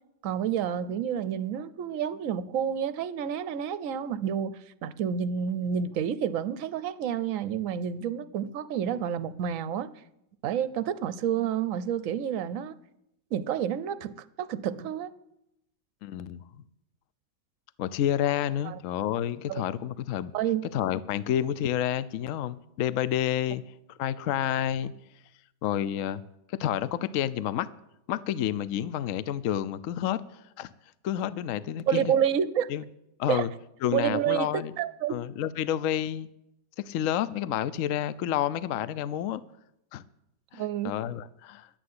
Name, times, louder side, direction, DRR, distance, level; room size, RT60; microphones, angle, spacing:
voice 1, 0.2-9.9 10.4-12.7 13.3-15.1 18.6-18.8 19.5-19.6 20.3-20.6 31.9-32.7 33.3-33.5 33.9-35.2 40.6-40.9, right 9 dB, 60° right, 15 dB, 0.9 m, -29 dB
voice 2, 16.0-16.4 17.8-20.3 20.7-23.6 23.9-24.9 25.6-26.2 26.5-27.7 28.1-30.7 31.0-32.1 32.7-32.8 33.2-33.5 33.8-34.7 35.1-36.3 36.8-39.4 39.9-40.0 40.5-41.7, left 11 dB, 65° left, 17 dB, 0.8 m, -29 dB
11.5 x 9.2 x 9.5 m, 0.83 s
omnidirectional pair, 1.9 m